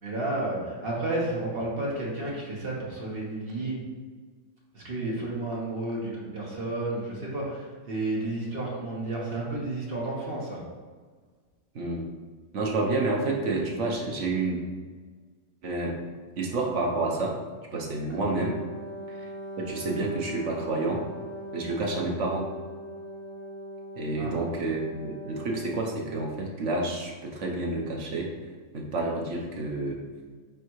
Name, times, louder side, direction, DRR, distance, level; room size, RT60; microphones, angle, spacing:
voice 1, 0.0-3.7 4.7-10.6 24.2-24.3, right 2 dB, 45° right, -4 dB, 1.5 m, -31 dB
voice 2, 11.7-12.1 12.5-14.6 15.6-16.0 16.4-17.4 17.7-18.6 19.1-19.3 19.6-21.1 21.5-22.5 24.0-28.3 28.7-30.0, right 2 dB, 65° right, -1 dB, 1.3 m, -29 dB
Wind instrument woodwind instrument, 18.0-26.1, equal, 45° left, 2.0 m, -40 dB
9.1 x 3.4 x 3.1 m, 1.5 s
omnidirectional pair, 1.4 m